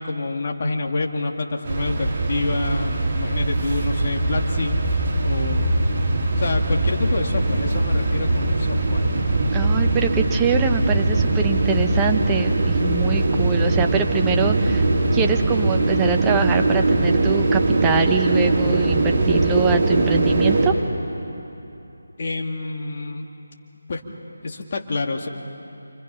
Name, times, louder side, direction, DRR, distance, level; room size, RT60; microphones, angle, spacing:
voice 1, 0.0-4.8 5.2-5.7 6.4-9.0 22.2-23.3 23.9-24.0 24.4-25.3, left 3 dB, 40° left, 1 dB, 2.3 m, -27 dB
sound 1, 1.6-20.7, right 2 dB, 35° right, 4.3 m, -21 dB
voice 2, 9.5-14.9 15.1-20.7, right 5 dB, 10° right, 3 dB, 1.0 m, -24 dB
29.0 x 25.0 x 5.7 m, 2.9 s
figure-of-eight pair, 160°, 0 cm